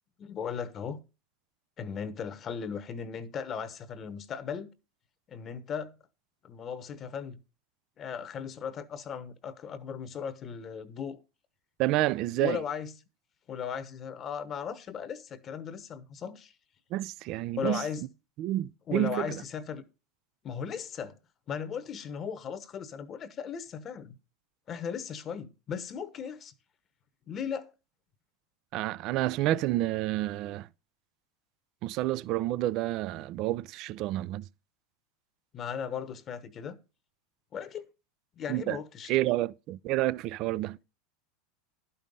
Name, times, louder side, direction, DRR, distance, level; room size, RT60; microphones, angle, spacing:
voice 1, 0.2-1.0 1.8-4.7 5.3-5.9 6.4-7.4 8.0-11.2 12.4-12.9 13.5-16.5 17.6-18.0 18.9-19.8 20.4-21.1 21.5-24.1 24.7-26.5 27.3-27.7 35.5-36.8 37.5-37.8 38.4-39.1, left 7 dB, 35° left, 1.0 m, -37 dB
voice 2, 11.8-12.6 16.9-17.8 18.4-19.3 28.7-30.7 31.8-34.5 38.5-38.8 39.1-40.8, right 16 dB, 50° right, 0.4 m, -29 dB
11.5 x 5.5 x 5.3 m
hypercardioid pair, 100°, 0 cm